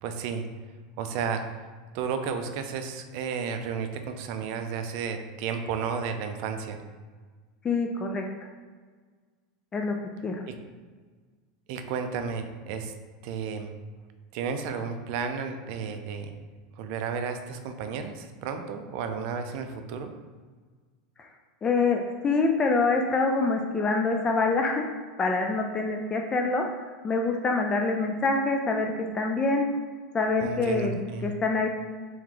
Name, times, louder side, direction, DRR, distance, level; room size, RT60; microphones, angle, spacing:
voice 1, 0.0-0.4 1.0-1.4 1.9-6.8 10.5-10.6 11.7-12.9 13.2-13.7 14.3-16.3 16.8-20.1 30.4-31.3, right 6 dB, 55° right, 7 dB, 0.5 m, -32 dB
voice 2, 7.6-8.2 9.7-9.9 10.2-10.4 21.6-24.8 25.2-26.7 27.0-29.7 30.1-31.7, left 3 dB, 20° left, 2 dB, 0.4 m, -25 dB
3.4 x 3.1 x 3.7 m, 1.5 s
supercardioid pair, 135°, 4 cm